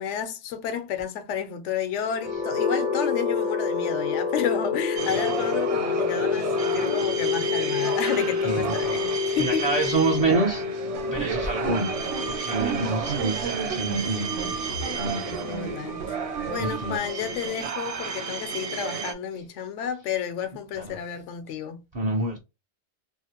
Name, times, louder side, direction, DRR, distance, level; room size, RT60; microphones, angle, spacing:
voice 1, 0.0-9.8 15.3-16.2 16.4-21.8, left 8 dB, 80° left, 0.9 m, -31 dB
sound 1, 2.1-16.0, left 6 dB, 55° left, 0.5 m, -28 dB
sound 2, 5.0-19.1, right 6 dB, 65° right, 0.3 m, -33 dB
voice 2, 8.4-15.3 16.6-17.2 18.0-18.2 20.8-21.0 21.9-22.4, right 3 dB, 40° right, 0.7 m, -28 dB
sound 3, 10.9-17.0, right 6 dB, 85° right, 1.1 m, -34 dB
2.8 x 2.5 x 2.8 m
omnidirectional pair, 1.2 m